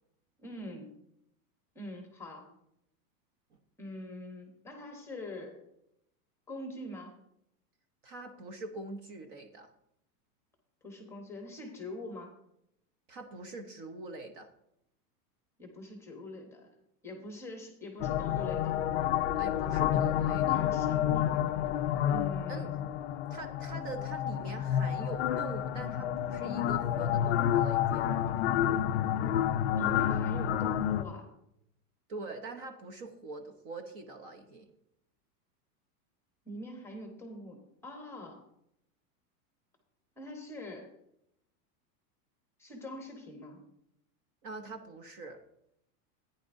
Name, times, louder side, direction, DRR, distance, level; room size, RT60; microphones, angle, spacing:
voice 1, 0.4-0.9 1.7-2.5 3.8-5.6 6.5-7.1 10.8-12.4 15.6-16.7 17.0-18.8 20.2-21.3 22.1-22.9 29.8-31.3 36.4-38.4 40.2-40.9 42.6-43.6, left 1 dB, 5° left, 2 dB, 0.9 m, -44 dB
voice 2, 8.0-9.7 13.1-14.5 19.3-20.6 22.5-22.7 23.3-28.1 32.1-34.7 44.4-45.4, right 3 dB, 35° right, 5 dB, 0.8 m, -43 dB
sound 1, 18.0-31.0, left 10 dB, 45° left, 0.5 m, -29 dB
14.5 x 9.8 x 2.6 m, 0.77 s
supercardioid pair, 180°, 48 cm